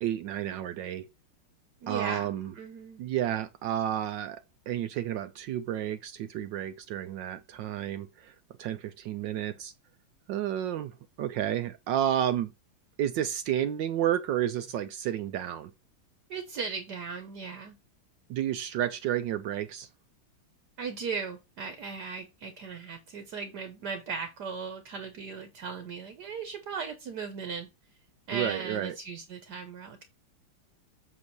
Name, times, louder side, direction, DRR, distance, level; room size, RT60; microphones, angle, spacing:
voice 1, 0.0-1.1 1.9-2.5 3.0-4.4 4.7-8.3 8.6-9.7 10.3-12.5 13.0-15.7 18.3-19.9 28.3-28.9, right 11 dB, 70° right, 1.1 m, -31 dB
voice 2, 1.8-3.0 16.3-17.8 20.8-27.7 28.3-30.0, right 5 dB, 55° right, 1.4 m, -37 dB
7.9 x 3.1 x 5.9 m
omnidirectional pair, 2.3 m